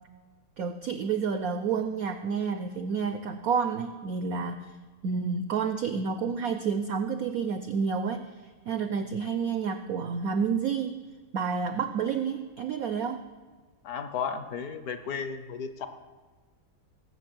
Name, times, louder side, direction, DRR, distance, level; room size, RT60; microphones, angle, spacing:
voice 1, 0.6-4.8 5.0-8.4 8.6-11.1 11.3-13.3, right 6 dB, 85° right, 9 dB, 0.7 m, -29 dB
voice 2, 13.8-15.9, left 6 dB, 60° left, 9 dB, 1.0 m, -34 dB
17.5 x 6.6 x 7.8 m, 1.4 s
omnidirectional pair, 2.3 m